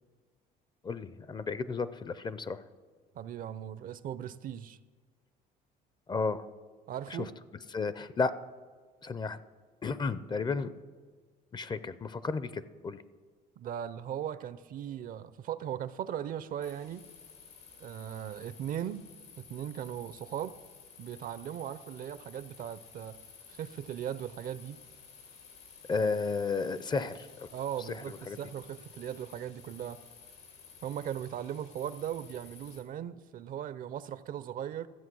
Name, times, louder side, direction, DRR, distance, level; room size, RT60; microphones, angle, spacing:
voice 1, 0.8-2.7 6.1-6.5 7.1-7.3 7.7-8.3 9.0-9.4 9.8-10.7 11.5-13.0 25.9-27.5 27.8-28.4, left 4 dB, 25° left, 0.5 m, -33 dB
voice 2, 3.1-4.8 6.9-7.3 13.6-17.1 17.8-19.1 19.4-20.6 21.0-23.2 23.5-24.8 27.0-27.1 27.5-30.0 30.8-34.9, right 10 dB, 55° right, 0.5 m, -38 dB
sound 1, 16.6-32.8, left 6 dB, 90° left, 2.4 m, -54 dB
14.0 x 7.6 x 6.2 m
cardioid pair, 110°, 17 cm